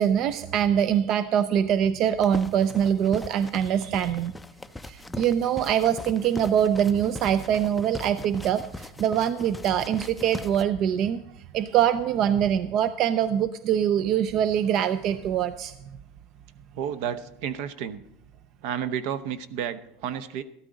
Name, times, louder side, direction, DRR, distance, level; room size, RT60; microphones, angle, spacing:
voice 1, 0.0-4.3 4.8-11.2 11.5-15.7, right 9 dB, 45° right, 12 dB, 0.5 m, -24 dB
sound 1, 2.2-10.6, left 2 dB, 5° left, 0.4 m, -41 dB
voice 2, 16.7-18.0 18.6-20.4, right 9 dB, 65° right, 12 dB, 0.8 m, -31 dB
14.0 x 12.5 x 3.9 m, 0.80 s
supercardioid pair, 135°, 0 cm